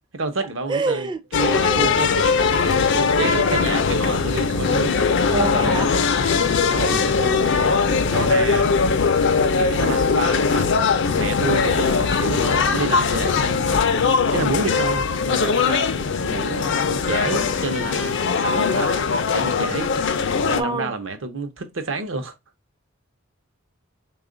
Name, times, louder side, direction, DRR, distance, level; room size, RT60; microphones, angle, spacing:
voice 1, 0.1-5.0 6.7-8.7 9.6-10.7 11.1-14.0 14.3-15.9 16.2-19.9 20.5-22.3, right 3 dB, 65° right, 0.7 m, -29 dB
voice 2, 0.7-1.9 5.3-5.9 15.7-16.0 20.6-20.9, right 3 dB, 25° right, 0.4 m, -27 dB
sound 1, 1.3-20.6, left 5 dB, 60° left, 0.4 m, -20 dB
3.6 x 2.3 x 3.7 m
head